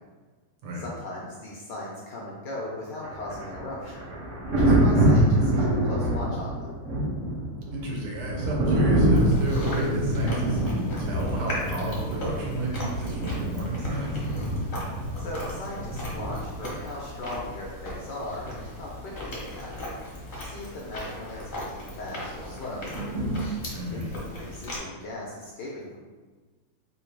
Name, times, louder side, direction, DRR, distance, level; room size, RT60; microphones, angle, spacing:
voice 1, 0.7-4.1 4.5-6.7 15.2-19.9 20.3-22.8 23.9-26.0, left 1 dB, 70° left, -3 dB, 1.0 m, -38 dB
Thunder, 3.0-16.7 18.3-18.5, right 1 dB, 60° right, 0.8 m, -25 dB
voice 2, 7.7-14.2 23.7-24.1, right 1 dB, 75° right, -2 dB, 1.7 m, -31 dB
Chewing mastication, 9.1-24.8, equal, 40° left, 0.7 m, -36 dB
3.8 x 2.7 x 4.5 m, 1.4 s
omnidirectional pair, 2.4 m